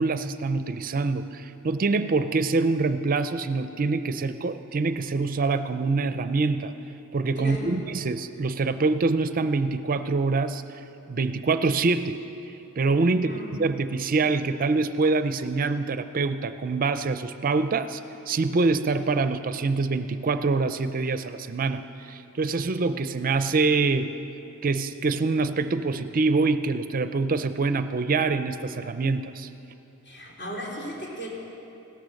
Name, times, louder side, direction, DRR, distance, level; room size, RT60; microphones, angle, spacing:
voice 1, 0.0-6.7 7.1-10.6 11.1-12.2 12.8-18.0 18.3-24.1 24.6-29.5, right 3 dB, 40° right, 11 dB, 0.5 m, -25 dB
voice 2, 7.4-7.8 13.1-13.5 30.0-31.3, right 1 dB, 50° left, -3 dB, 3.6 m, -36 dB
16.5 x 13.5 x 6.4 m, 2.9 s
head